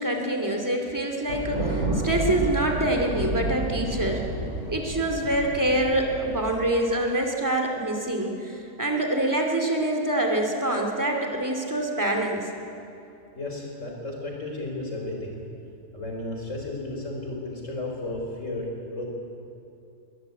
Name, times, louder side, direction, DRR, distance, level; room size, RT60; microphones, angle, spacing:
voice 1, 0.0-4.2 4.7-12.5, right 1 dB, 10° right, 2 dB, 2.7 m, -25 dB
Thunder, 1.3-6.6, right 2 dB, 50° right, 5.1 m, -30 dB
voice 2, 13.3-15.4 15.9-19.0, left 2 dB, 50° left, 0 dB, 4.9 m, -33 dB
22.0 x 19.5 x 8.5 m, 2.7 s
omnidirectional pair, 1.6 m